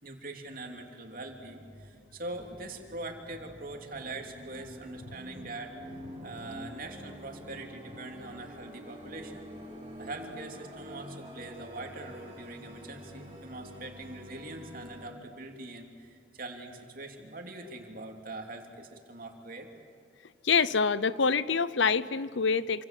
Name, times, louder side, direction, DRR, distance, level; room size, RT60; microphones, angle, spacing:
voice 1, 0.0-5.8 6.2-9.5 10.0-19.7, right 2 dB, 45° right, 3 dB, 3.1 m, -43 dB
sound 1, 1.0-15.1, equal, 25° right, 6.7 m, -47 dB
voice 2, 20.4-22.8, left 5 dB, 70° left, 16 dB, 0.7 m, -26 dB
28.0 x 26.0 x 7.8 m, 2.4 s
head